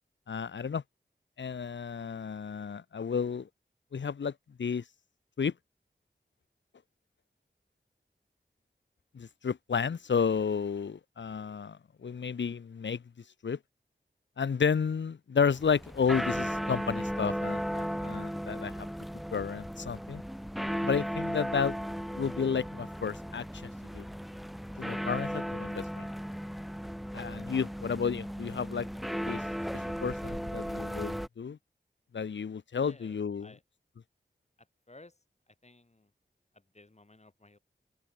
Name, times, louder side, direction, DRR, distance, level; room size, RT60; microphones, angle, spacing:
voice 1, 0.3-0.8 1.4-3.5 3.9-4.3 4.6-4.8 5.4-5.5 9.1-13.0 13.4-13.6 14.4-18.9 19.3-20.2 20.8-21.8 22.2-24.0 24.8-26.1 27.1-28.9 29.3-29.4 29.7-31.6 32.1-33.5, left 6 dB, 80° left, 0.8 m, -32 dB
sound 1, 15.5-31.3, equal, ahead, 1.2 m, -36 dB
voice 2, 27.5-28.0 32.8-33.6 34.9-35.2 35.5-36.1 36.5-37.6, left 2 dB, 35° left, 3.8 m, -56 dB
open air
wide cardioid pair, 55°, 19 cm